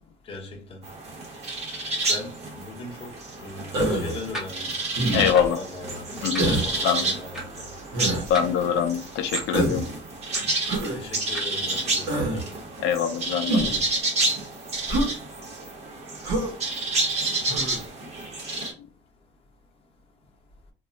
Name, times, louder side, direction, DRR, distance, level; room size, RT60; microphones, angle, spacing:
voice 1, 0.3-0.8 2.1-4.7 5.1-6.1 6.4-7.7 10.9-12.4, left 3 dB, 30° left, 0.8 m, -39 dB
sound 1, 0.8-18.7, right 2 dB, 35° right, 0.9 m, -30 dB
Human voice, 3.7-4.2 5.0-5.5 6.4-6.7 7.9-8.3 9.5-9.9 10.7-11.0 12.1-12.4 13.5-13.8 14.9-15.1 16.2-16.5 17.5-17.8, right 1 dB, 80° right, 0.9 m, -25 dB
sound 2, 4.3-4.5 5.3-5.6 6.3-6.5 7.3-7.4 8.3-8.8 9.3-9.5 10.3-10.6 11.3-11.4, equal, 5° right, 0.6 m, -36 dB
voice 2, 5.1-5.6 6.2-6.5 6.8-7.1 8.3-9.8 12.8-13.7, left 8 dB, 80° left, 0.4 m, -24 dB
2.4 x 2.0 x 3.7 m
cardioid pair, 155°, 18 cm